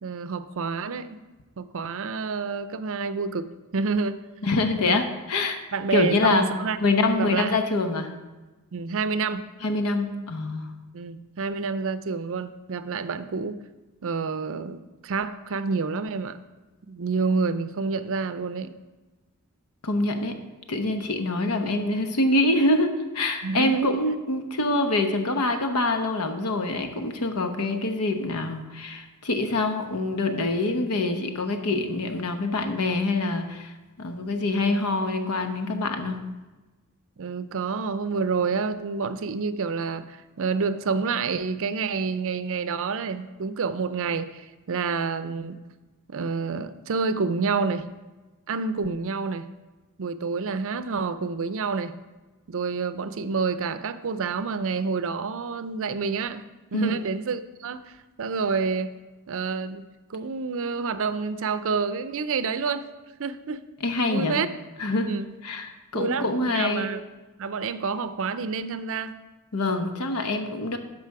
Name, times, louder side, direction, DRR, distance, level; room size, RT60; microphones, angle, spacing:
voice 1, 0.0-1.2 1.6-4.2 4.8-5.0 5.7-7.6 8.7-9.5 10.9-13.6 14.0-16.4 16.9-18.7 23.4-24.0 37.2-45.6 46.1-47.9 48.5-49.5 50.0-51.9 52.5-56.4 56.7-59.0 59.3-62.9 63.2-63.6 64.1-64.5 65.0-65.3 65.9-67.0 67.4-69.1, right 4 dB, 65° right, 12 dB, 0.5 m, -28 dB
voice 2, 4.4-5.6 5.9-6.5 6.8-8.1 9.6-10.8 19.8-20.4 20.7-33.7 34.0-36.3 56.7-56.9 63.8-64.3 64.8-65.1 65.4-66.9 69.5-70.8, left 2 dB, 85° left, 6 dB, 0.9 m, -25 dB
12.5 x 5.0 x 4.7 m, 1.2 s
head